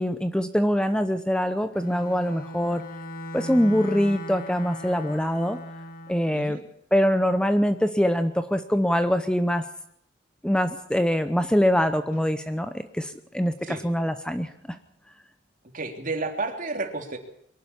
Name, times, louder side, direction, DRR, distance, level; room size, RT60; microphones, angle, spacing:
voice 1, 0.0-2.8 3.3-5.6 6.1-6.6 6.9-9.6 10.4-14.8, equal, 5° left, 10 dB, 0.8 m, -24 dB
Bowed string instrument, 1.7-6.3, equal, 50° left, 1.9 m, -38 dB
voice 2, 15.7-17.2, right 3 dB, 45° right, 4 dB, 3.1 m, -31 dB
23.0 x 11.5 x 9.8 m, 0.73 s
head